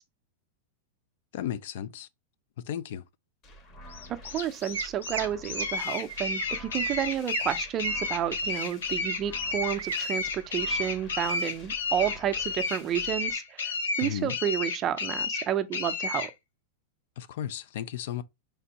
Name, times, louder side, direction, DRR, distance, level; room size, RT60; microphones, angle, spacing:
voice 1, 1.3-2.1 2.6-3.0 14.0-14.3 17.2-18.2, left 10 dB, 65° left, 0.4 m, -34 dB
sound 1, 3.4-13.3, equal, 35° left, 1.3 m, -49 dB
sound 2, 3.9-16.3, left 4 dB, 90° left, 0.9 m, -32 dB
voice 2, 4.1-13.7 14.0-16.3, right 10 dB, 30° right, 0.5 m, -31 dB
Chirp tweet, 4.3-4.4 4.7-5.2 5.5-5.8 6.1-6.5 6.8-7.5 7.8-9.2 9.4-10.0 10.4-10.7 11.1-11.5, right 9 dB, 90° right, 0.3 m, -36 dB
4.3 x 3.4 x 2.8 m
supercardioid pair, 135°, 0 cm